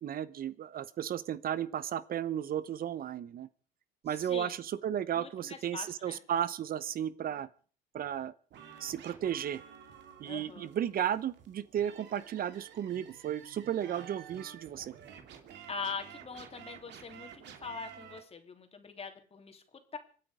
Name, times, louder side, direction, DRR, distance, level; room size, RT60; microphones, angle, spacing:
voice 1, 0.0-3.5 4.0-7.5 7.9-8.3 8.8-9.6 10.2-14.9, right 10 dB, 50° right, 17 dB, 0.9 m, -34 dB
voice 2, 4.1-4.5 5.1-6.2 10.2-10.7 15.7-19.6 19.9-20.0, left 5 dB, 30° left, 5 dB, 3.1 m, -42 dB
sound 1, 8.5-18.2, right 8 dB, 65° right, 2.7 m, -51 dB
25.5 x 9.2 x 5.0 m, 0.42 s
supercardioid pair, 90°, 20 cm